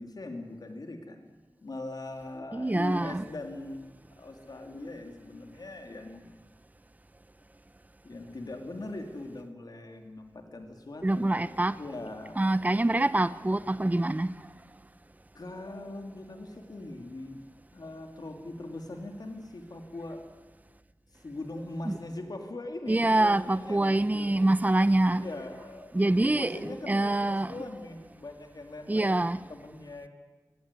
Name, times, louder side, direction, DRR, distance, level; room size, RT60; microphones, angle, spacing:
voice 1, 0.0-6.4 8.0-12.5 15.3-17.4 17.7-20.2 21.1-24.5 25.1-29.2 29.5-30.1, left 2 dB, 65° left, 2.8 m, -41 dB
voice 2, 2.5-3.2 11.0-11.8 12.4-14.3 21.9-22.0 22.9-25.2 25.9-26.6 26.9-27.5 28.9-29.4, right 2 dB, 20° right, 0.7 m, -25 dB
23.5 x 19.5 x 9.7 m
wide cardioid pair, 80°, 7 cm